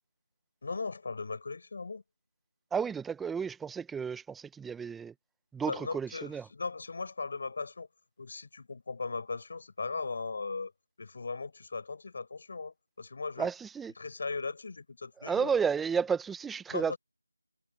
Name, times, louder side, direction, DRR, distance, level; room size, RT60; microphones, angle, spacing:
voice 1, 0.6-2.0 5.7-7.9 8.2-10.7 11.0-13.5 14.0-15.5 16.7-17.0, left 4 dB, 45° left, 7.3 m, -38 dB
voice 2, 2.7-5.1 5.5-6.4 13.4-13.9 15.2-16.9, right 6 dB, 5° right, 1.2 m, -32 dB
figure-of-eight pair, 170°, 0 cm